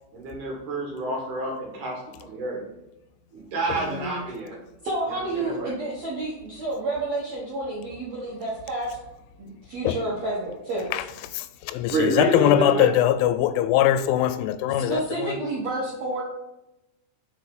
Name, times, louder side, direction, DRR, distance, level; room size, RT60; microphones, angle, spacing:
voice 1, 0.1-2.6 3.3-4.6 5.1-5.7 11.9-12.9, right 2 dB, 60° right, 2.2 m, -29 dB
voice 2, 3.7-4.2 4.8-9.0 9.4-10.9 14.9-16.2, right 2 dB, 90° right, 1.5 m, -30 dB
voice 3, 11.3-15.4, left 11 dB, 85° left, 3.0 m, -22 dB
6.4 x 6.2 x 3.7 m
omnidirectional pair, 5.5 m